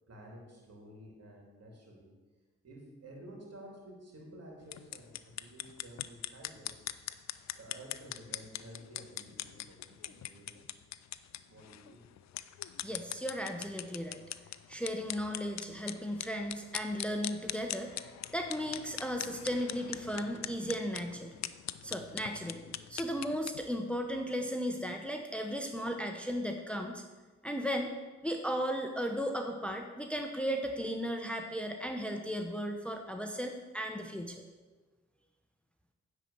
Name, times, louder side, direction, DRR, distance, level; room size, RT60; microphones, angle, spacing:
voice 1, 0.1-2.1 2.6-6.8 7.5-10.8 11.4-12.0, right 1 dB, 55° right, -1 dB, 3.0 m, -52 dB
sound 1, 4.6-23.6, left 12 dB, 65° left, 0.5 m, -42 dB
voice 2, 12.8-14.2 14.7-18.0 18.3-21.3 21.8-22.6 22.9-27.0 27.4-27.9 28.2-34.4, equal, 5° left, 3 dB, 0.9 m, -35 dB
9.8 x 4.5 x 6.6 m, 1.3 s
supercardioid pair, 45°, 30 cm